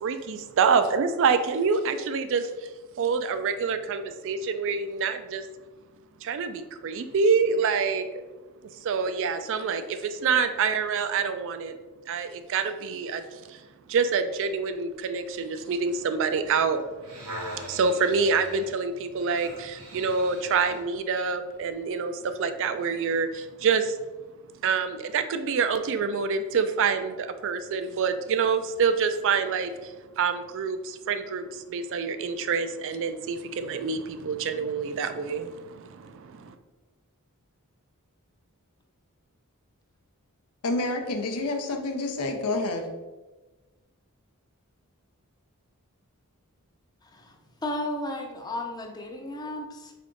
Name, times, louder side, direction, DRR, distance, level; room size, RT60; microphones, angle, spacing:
voice 1, 0.0-2.5 3.0-5.5 6.2-8.1 8.8-11.8 12.1-13.6 13.9-16.8 17.1-17.3 17.6-24.0 24.6-36.5, right 5 dB, 60° right, 9 dB, 0.4 m, -26 dB
sound 1, 17.0-20.9 21.5-21.7, right 1 dB, 90° right, 1.4 m, -42 dB
voice 2, 40.6-42.9, left 2 dB, 80° left, 4 dB, 0.6 m, -28 dB
voice 3, 47.0-49.9, left 1 dB, 20° left, 2 dB, 0.6 m, -34 dB
3.7 x 3.5 x 3.8 m, 1.2 s
head